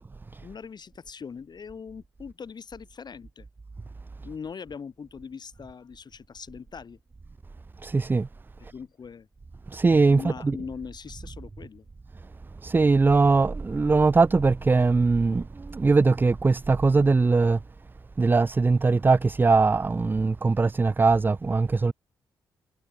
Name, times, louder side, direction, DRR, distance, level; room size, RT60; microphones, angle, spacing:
voice 1, 0.4-3.5 4.2-7.0 8.6-9.3 10.1-11.9, left 6 dB, 45° left, 2.1 m, -41 dB
voice 2, 7.8-8.3 9.7-10.6 12.6-17.6 18.2-21.9, right 4 dB, 20° right, 0.4 m, -21 dB
figure-of-eight pair, 40°, 11 cm